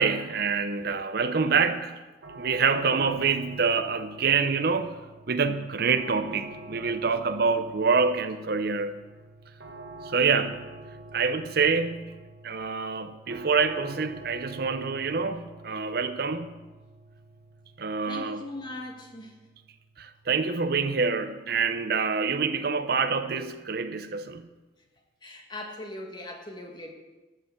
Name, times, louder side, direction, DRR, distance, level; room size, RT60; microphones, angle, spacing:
voice 1, 0.0-2.0 2.4-5.0 5.3-9.0 10.0-10.7 11.1-12.2 12.4-16.5 17.8-18.5 20.0-24.5, right 5 dB, 55° right, 10 dB, 0.6 m, -26 dB
sound 1, 2.2-21.1, right 2 dB, 75° right, 1.7 m, -47 dB
voice 2, 18.1-19.4 25.2-26.9, left 2 dB, 25° left, 2 dB, 1.6 m, -40 dB
13.0 x 6.8 x 7.1 m, 1.2 s
head